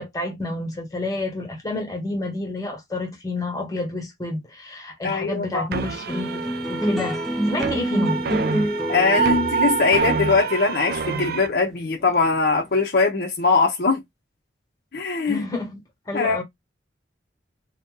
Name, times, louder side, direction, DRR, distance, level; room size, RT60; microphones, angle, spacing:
voice 1, 0.0-6.4 6.7-8.2 15.3-15.8 16.1-16.4, left 2 dB, 20° left, 1.1 m, -29 dB
voice 2, 5.0-5.7 8.9-14.0 14.9-15.5 16.1-16.4, left 4 dB, 55° left, 0.6 m, -21 dB
sound 1, 5.7-11.5, right 5 dB, 55° right, 0.4 m, -26 dB
sound 2, 6.1-12.7, right 1 dB, ahead, 0.5 m, -27 dB
2.6 x 2.2 x 3.6 m
head